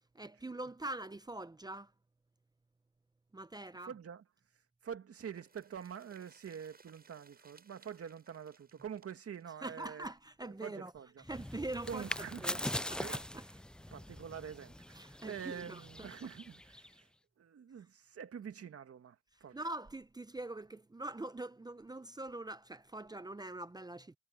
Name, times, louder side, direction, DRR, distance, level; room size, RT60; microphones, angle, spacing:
voice 1, 0.1-1.9 3.3-3.9 9.6-10.9 11.2-12.1 12.4-13.4 15.0-16.1 19.5-24.2, right 2 dB, 15° right, 0.7 m, -43 dB
voice 2, 3.8-4.2 4.8-10.1 10.4-11.2 11.9-13.2 13.9-17.1 17.4-19.2 19.4-19.6, right 8 dB, 50° right, 2.2 m, -46 dB
sound 1, 5.1-10.9 11.2-11.3 11.6-11.7, right 4 dB, 30° right, 7.2 m, -64 dB
sound 2, 11.3-17.0, left 1 dB, 5° left, 0.4 m, -42 dB
cardioid pair, 90°, 30 cm